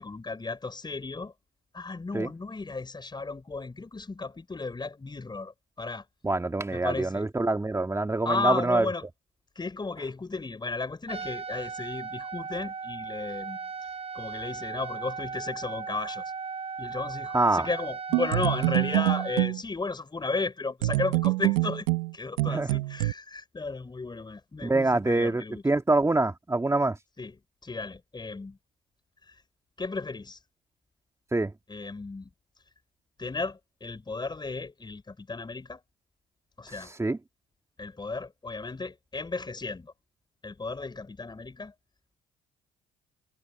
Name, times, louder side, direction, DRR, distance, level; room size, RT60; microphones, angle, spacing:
voice 1, 0.0-1.3 1.7-6.0 6.7-7.3 8.2-9.0 9.5-13.7 14.1-16.2 16.8-21.9 22.1-25.6 27.2-27.4 27.6-28.6 29.3-29.4 29.8-30.4 31.7-32.3 33.2-35.8 36.6-36.9 37.8-39.9 40.4-41.7, left 3 dB, 25° left, 4.8 m, -34 dB
voice 2, 6.2-8.9 17.3-17.7 22.5-22.7 24.6-27.0 31.3-31.5 36.7-37.2, right 2 dB, 15° right, 2.4 m, -25 dB
Trumpet, 11.1-19.5, right 5 dB, 35° right, 6.4 m, -37 dB
sound 1, 18.1-19.6 20.8-23.1, right 21 dB, 80° right, 1.9 m, -26 dB
hypercardioid pair, 55°, 18 cm